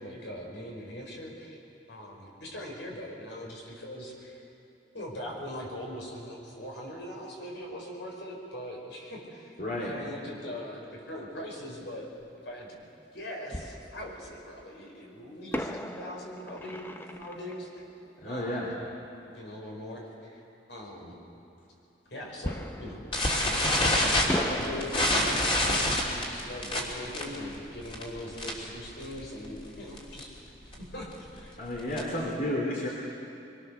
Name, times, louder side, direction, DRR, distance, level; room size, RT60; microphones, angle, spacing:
voice 1, 0.0-1.6 1.9-4.4 4.9-12.1 12.4-12.8 13.1-17.7 18.3-18.8 19.3-20.4 20.7-21.1 22.1-23.4 24.0-30.4 30.7-31.6 31.9-32.3, left 1 dB, 75° left, -1 dB, 5.5 m, -41 dB
voice 2, 9.6-10.0 18.2-18.7 31.6-32.9, left 1 dB, 45° left, -2 dB, 2.9 m, -31 dB
Fireworks, 12.2-12.3 13.5-14.6 15.5-19.0 22.4-23.9 24.3-28.8 29.1-29.2 29.7-29.9, left 1 dB, 10° left, 0.7 m, -39 dB
sound 1, 23.1-28.7 29.0-29.3 29.6-29.7 30.0-30.2 30.7-32.3, left 1 dB, 30° left, 3.2 m, -27 dB
24.0 x 23.0 x 6.8 m, 2.8 s
head